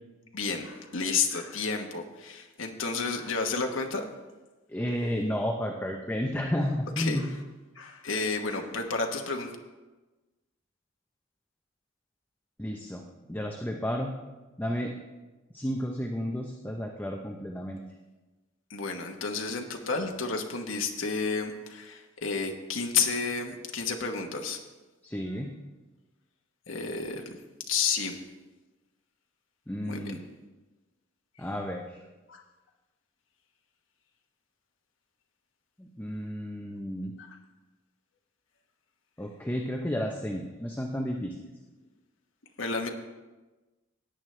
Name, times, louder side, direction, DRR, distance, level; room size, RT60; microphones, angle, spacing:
voice 1, 0.3-4.0 7.0-7.3 7.7-9.6 18.7-24.6 26.7-27.4 27.7-28.2 29.9-30.0 32.3-32.4 37.2-37.3 42.6-42.9, left 5 dB, 65° left, 3 dB, 1.2 m, -31 dB
voice 2, 4.7-7.3 12.6-13.0 13.3-14.1 14.6-14.9 15.5-17.8 25.0-25.5 29.7-30.2 31.4-32.0 35.8-37.1 39.2-41.4, equal, 10° left, 1 dB, 0.7 m, -32 dB
16.5 x 9.1 x 3.3 m, 1.2 s
head